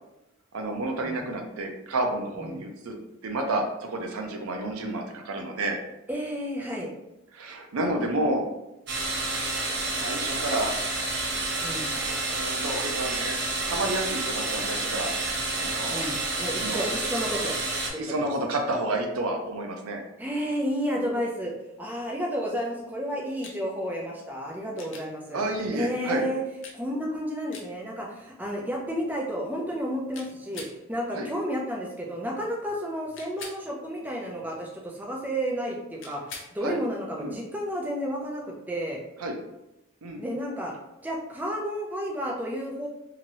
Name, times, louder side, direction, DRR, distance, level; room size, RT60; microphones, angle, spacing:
voice 1, 0.5-2.9 3.2-5.8 7.3-8.4 10.0-10.7 11.9-15.1 15.6-16.1 16.6-16.9 18.0-20.0 25.3-26.3 31.1-31.3 36.6-36.8 37.2-37.4 39.2-39.4 40.0-40.2, right 2 dB, 90° right, 3 dB, 0.6 m, -30 dB
voice 2, 6.1-6.9 11.6-11.9 15.9-17.6 17.9-18.6 20.2-21.5 21.8-25.4 25.7-26.4 26.7-36.2 36.5-39.0 40.2-40.7 41.0-42.9, equal, 10° right, -2 dB, 0.4 m, -31 dB
sound 1, 8.9-17.9, right 2 dB, 55° right, 0.7 m, -29 dB
sound 2, 23.4-23.6 24.8-25.1 26.6-26.8 27.5-27.7 30.1-30.8 33.1-33.6 36.0-36.5 38.8-38.9, left 4 dB, 60° left, 0.6 m, -42 dB
2.9 x 2.8 x 2.6 m, 0.92 s
head